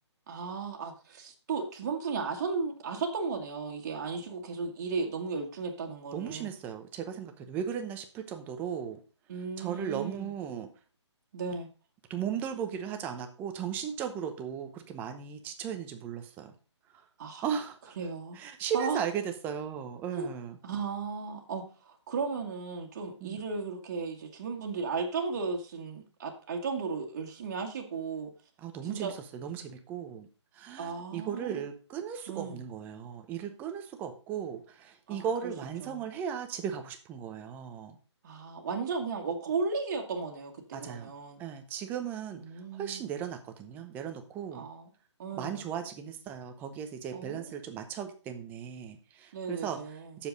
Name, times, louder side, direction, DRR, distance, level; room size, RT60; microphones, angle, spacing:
voice 1, 0.3-6.5 9.3-10.3 11.3-11.7 17.2-17.4 18.0-18.4 18.7-19.0 20.2-20.3 20.6-28.3 28.8-29.1 30.8-31.6 32.3-32.6 35.1-35.5 35.8-36.1 38.2-41.4 42.4-43.0 44.5-44.9 45.2-45.6 47.1-47.5 49.3-50.2, right 4 dB, 35° right, 1 dB, 1.9 m, -35 dB
voice 2, 6.1-9.0 9.6-10.7 12.1-16.5 16.9-17.0 17.4-17.9 18.4-20.6 23.2-23.4 28.6-30.3 30.5-38.0 40.7-41.1 41.4-44.7 45.4-49.8 50.2-50.3, right 8 dB, 10° right, 7 dB, 0.8 m, -36 dB
7.9 x 7.1 x 5.2 m, 0.35 s
hypercardioid pair, 155°, 15 cm